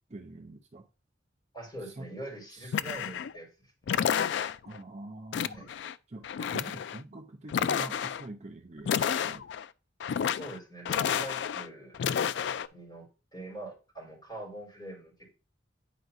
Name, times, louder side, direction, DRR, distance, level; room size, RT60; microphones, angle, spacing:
voice 1, 0.1-0.9 1.9-2.0 2.6-2.7 4.6-5.7 6.1-9.4, right 2 dB, 35° right, 0.6 m, -45 dB
voice 2, 1.5-3.7 5.5-5.7 10.2-12.0 12.7-15.3, right 1 dB, 25° left, 3.9 m, -44 dB
sound 1, 2.7-3.4 3.9-4.8 5.3-5.9 6.2-7.0 7.5-8.2 8.8-9.7 10.0-10.6 10.9-11.7 11.9-12.7, left 8 dB, 65° left, 0.3 m, -30 dB
9.2 x 4.7 x 2.6 m
head